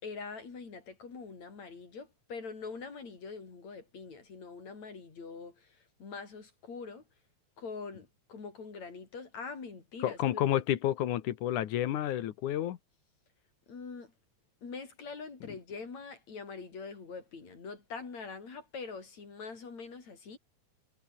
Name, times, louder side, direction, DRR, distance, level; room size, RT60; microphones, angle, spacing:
voice 1, 0.0-7.0 7.6-10.5 13.7-14.1 14.6-20.4, left 4 dB, 65° left, 6.2 m, -44 dB
voice 2, 10.0-12.8, left 12 dB, 90° left, 2.8 m, -30 dB
omnidirectional pair, 3.4 m